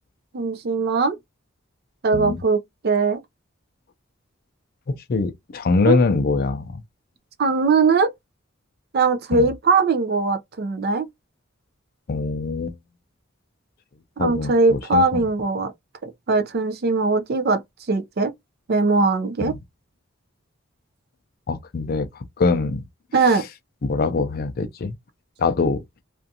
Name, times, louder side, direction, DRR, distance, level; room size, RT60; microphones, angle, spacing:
voice 1, 0.3-1.2 2.0-3.2 5.9-6.0 7.4-8.1 8.9-11.1 14.2-15.7 16.0-17.6 17.9-18.3 18.7-19.5 23.1-23.5, right 4 dB, 50° right, 0.4 m, -20 dB
voice 2, 5.1-6.8 9.3-9.4 12.1-12.8 14.2-14.5 14.9-15.2 19.4-19.5 21.5-22.1 22.4-22.8 23.8-24.9 25.4-25.8, left 4 dB, 45° left, 0.4 m, -22 dB
2.5 x 2.4 x 2.6 m
head